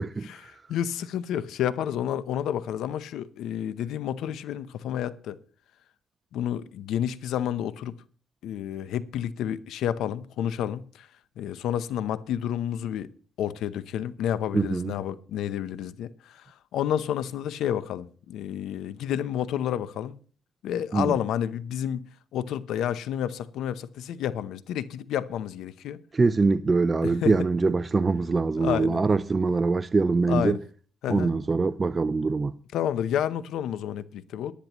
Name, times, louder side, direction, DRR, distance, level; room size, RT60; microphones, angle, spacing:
voice 1, 0.0-0.4 0.7-5.4 6.3-7.9 8.4-11.1 11.4-13.1 13.4-20.2 20.6-22.0 22.3-26.0 27.0-27.4 28.6-29.0 30.3-30.6 31.0-31.3 32.7-34.5, left 10 dB, 80° left, 0.7 m, -30 dB
voice 2, 14.5-14.9 20.9-21.1 26.1-30.6 31.1-32.5, right 4 dB, 30° right, 0.5 m, -23 dB
18.5 x 10.5 x 3.0 m
cardioid pair, 90°, 0 cm